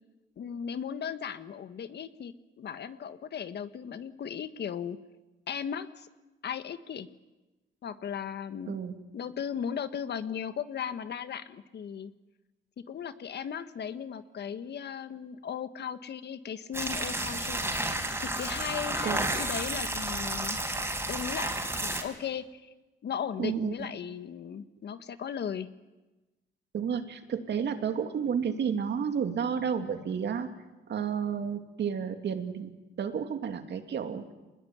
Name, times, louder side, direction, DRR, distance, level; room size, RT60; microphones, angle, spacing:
voice 1, 0.4-5.0 5.5-6.1 6.4-7.1 7.8-8.7 9.1-12.1 12.9-17.7 18.2-20.6 21.1-22.7 23.0-25.7, left 8 dB, 55° left, 11 dB, 1.5 m, -37 dB
voice 2, 8.7-9.0 19.0-19.3 23.4-23.9 26.7-30.5 30.9-32.7 33.0-34.2, right 7 dB, 60° right, 7 dB, 2.8 m, -31 dB
sound 1, 16.7-22.0, right 1 dB, 10° right, 5.1 m, -31 dB
25.5 x 20.5 x 9.6 m, 1.1 s
cardioid pair, 90°, 20 cm